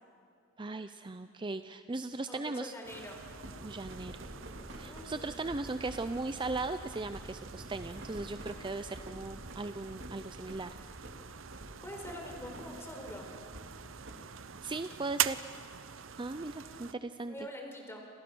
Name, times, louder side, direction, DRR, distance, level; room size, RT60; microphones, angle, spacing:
voice 1, 0.6-2.7 3.6-4.2 4.7-10.7 14.6-15.4 16.2-17.3, right 3 dB, 25° right, 10 dB, 0.5 m, -38 dB
voice 2, 2.3-3.2 4.9-5.4 11.8-13.3 16.5-16.8 17.3-18.1, equal, 15° left, 2 dB, 4.4 m, -45 dB
sound 1, 2.8-16.9, right 10 dB, 85° right, 0.7 m, -43 dB
sound 2, 3.2-15.0, equal, 65° right, 3.0 m, -49 dB
29.0 x 26.5 x 6.2 m, 2.3 s
head